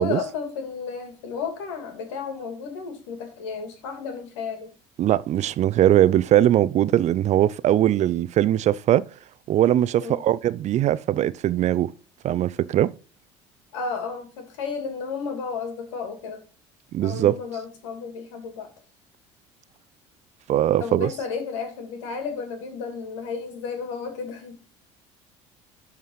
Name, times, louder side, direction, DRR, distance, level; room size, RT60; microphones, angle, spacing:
voice 1, 0.0-4.7 10.0-10.2 13.7-16.4 17.0-18.7 20.8-24.6, left 5 dB, 80° left, 3.0 m, -32 dB
voice 2, 5.0-9.1 9.5-11.9 12.2-12.9 16.9-17.4 20.5-21.1, right 12 dB, 50° right, 0.6 m, -20 dB
12.0 x 4.8 x 5.6 m
hypercardioid pair, 70°, 15 cm